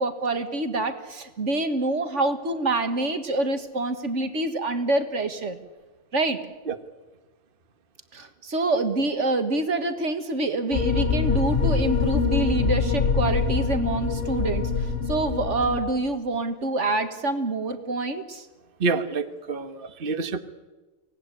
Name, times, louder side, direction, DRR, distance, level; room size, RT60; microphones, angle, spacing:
voice 1, 0.0-5.6 6.1-6.4 8.1-18.5, right 2 dB, 60° right, 8 dB, 2.0 m, -26 dB
sound 1, 10.7-15.8, left 5 dB, 60° left, 3.0 m, -24 dB
voice 2, 18.8-20.4, right 4 dB, 45° right, 9 dB, 1.4 m, -27 dB
24.5 x 18.0 x 10.0 m, 1.2 s
omnidirectional pair, 1.4 m